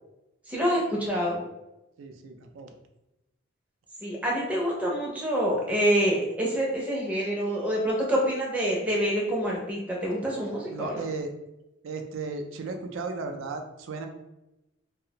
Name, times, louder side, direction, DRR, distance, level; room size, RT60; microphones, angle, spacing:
voice 1, 0.5-1.4 4.0-11.0, equal, 5° right, -4 dB, 0.4 m, -26 dB
voice 2, 2.0-2.7 10.7-11.3 11.8-14.1, right 4 dB, 80° right, 5 dB, 0.4 m, -35 dB
2.4 x 2.0 x 2.8 m, 0.94 s
head